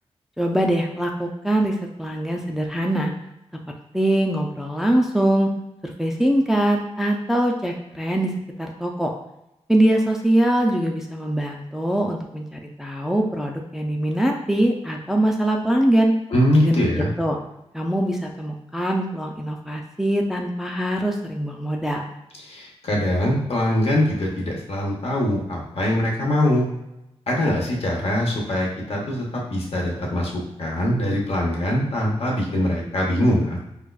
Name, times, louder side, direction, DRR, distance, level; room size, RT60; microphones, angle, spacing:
voice 1, 0.4-3.1 3.9-5.5 5.8-8.3 8.6-9.1 9.7-16.1 16.6-17.4 17.7-22.0, right 1 dB, 5° right, 1 dB, 0.3 m, -22 dB
voice 2, 16.3-17.1 22.4-26.6 27.3-29.2 29.5-30.3 30.6-33.6, left 1 dB, 60° left, -2 dB, 0.8 m, -22 dB
4.7 x 2.2 x 2.3 m, 0.88 s
wide cardioid pair, 110°, 11 cm